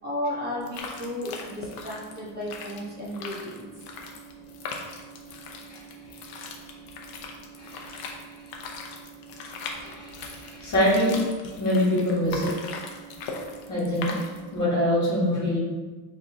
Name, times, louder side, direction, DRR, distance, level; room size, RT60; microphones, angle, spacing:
voice 1, 0.0-3.7, left 1 dB, 25° right, -7 dB, 1.3 m, -33 dB
sound 1, 0.6-14.6, left 3 dB, 60° left, 0.8 m, -40 dB
voice 2, 7.6-8.1 9.8-11.2 11.6-12.5 13.7-14.1 14.5-15.6, left 1 dB, 40° left, -8 dB, 1.5 m, -24 dB
4.7 x 3.6 x 2.7 m, 1.3 s
cardioid pair, 120°, 42 cm